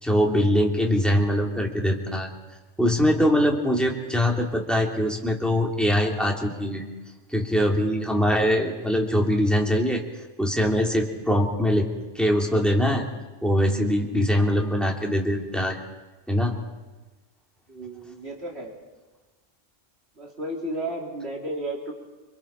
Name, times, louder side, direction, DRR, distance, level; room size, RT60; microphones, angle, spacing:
voice 1, 0.0-2.3 2.8-6.8 7.3-10.0 10.4-11.9 12.1-13.0 13.4-15.8 16.3-16.5, equal, ahead, 0 dB, 2.8 m, -22 dB
voice 2, 17.7-18.7 20.2-21.9, right 1 dB, 55° right, -1 dB, 3.5 m, -33 dB
29.5 x 26.0 x 4.4 m, 1.2 s
omnidirectional pair, 1.3 m